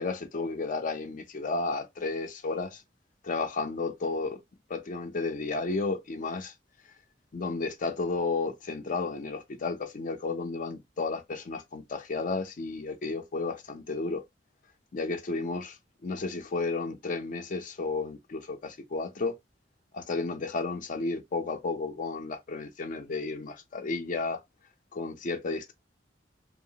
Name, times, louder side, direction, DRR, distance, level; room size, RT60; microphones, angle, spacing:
voice 1, 0.0-2.8 3.2-4.4 4.7-6.5 7.3-14.2 14.9-15.6 16.0-19.4 19.9-24.4 24.9-25.7, left 3 dB, 45° left, 0.5 m, -32 dB
2.8 x 2.0 x 2.7 m
head